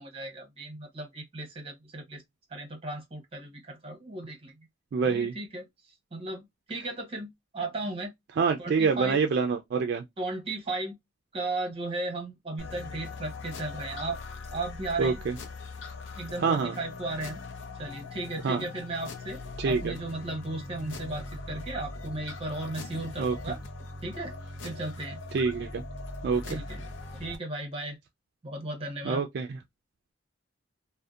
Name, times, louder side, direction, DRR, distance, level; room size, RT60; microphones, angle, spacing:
voice 1, 0.0-2.2 2.5-4.5 5.0-5.7 6.1-8.1 8.6-9.2 10.2-11.0 11.3-14.2 14.5-15.2 16.1-17.4 17.8-19.4 19.7-23.6 24.0-24.3 24.6-25.2 26.5-28.0 28.4-29.2, right 2 dB, 30° right, 0.8 m, -35 dB
voice 2, 4.9-5.3 8.4-10.0 15.0-15.3 16.4-16.8 18.4-18.6 19.6-19.9 23.2-23.4 25.3-25.8 26.2-26.6 29.1-29.6, right 5 dB, 55° right, 0.3 m, -26 dB
sound 1, 12.6-27.4, left 3 dB, 80° left, 0.6 m, -41 dB
2.6 x 2.1 x 2.3 m
head